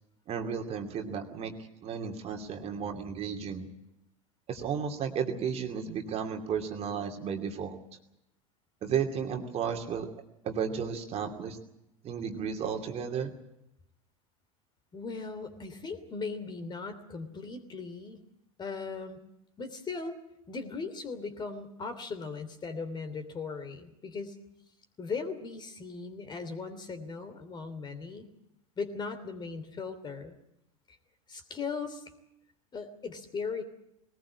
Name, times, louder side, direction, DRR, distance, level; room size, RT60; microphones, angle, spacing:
voice 1, 0.3-1.5 1.8-3.7 4.5-7.8 8.8-10.1 10.4-11.6 12.0-13.3, right 7 dB, 35° right, 4 dB, 2.6 m, -33 dB
voice 2, 14.9-18.2 18.6-19.2 19.6-20.2 20.5-24.4 25.0-28.3 28.8-30.3 30.9-31.0 31.3-32.0 32.7-33.6, left 4 dB, 25° left, 9 dB, 3.0 m, -38 dB
20.5 x 19.5 x 8.5 m, 0.85 s
figure-of-eight pair, 80°, 18 cm